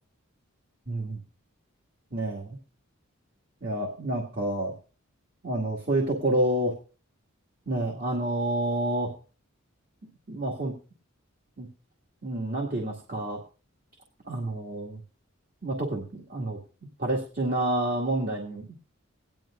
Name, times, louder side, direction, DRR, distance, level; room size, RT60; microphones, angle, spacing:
voice 1, 0.9-1.2 2.1-2.6 3.6-4.7 5.4-6.7 7.7-9.1 10.3-10.7 11.6-11.7 12.2-13.4 14.3-15.0 15.6-16.6 17.0-18.7, right 1 dB, 45° right, -1 dB, 2.0 m, -28 dB
18.0 x 11.0 x 2.5 m, 0.36 s
head